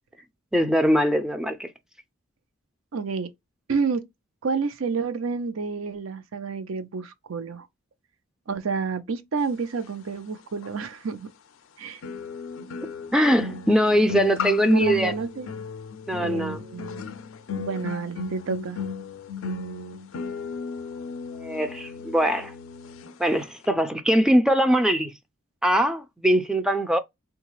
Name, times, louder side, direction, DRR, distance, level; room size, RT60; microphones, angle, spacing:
voice 1, 0.5-1.7 13.1-15.1 16.1-16.6 21.3-22.5 23.2-25.1 25.6-27.0, equal, 5° right, 0.3 m, -21 dB
voice 2, 2.9-3.3 3.7-4.0 4.4-7.7 8.5-11.3 11.8-12.0 14.7-15.5 16.2-17.1 17.5-18.8, right 5 dB, 80° right, 0.6 m, -29 dB
sound 1, 10.6-10.7 12.0-23.1 23.4-23.6, left 5 dB, 80° left, 0.4 m, -35 dB
3.8 x 2.3 x 3.0 m
head